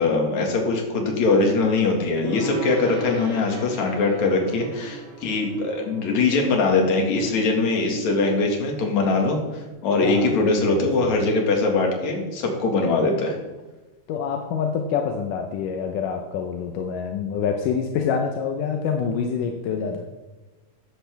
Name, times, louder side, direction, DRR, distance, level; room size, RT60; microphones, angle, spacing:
voice 1, 0.0-13.4, left 3 dB, 65° left, 2 dB, 3.2 m, -22 dB
Gong, 2.2-9.7, right 3 dB, 30° right, 1.2 m, -38 dB
voice 2, 10.0-11.1 14.1-20.1, left 6 dB, 85° left, 4 dB, 2.4 m, -26 dB
14.0 x 10.0 x 3.5 m, 1.1 s
omnidirectional pair, 3.6 m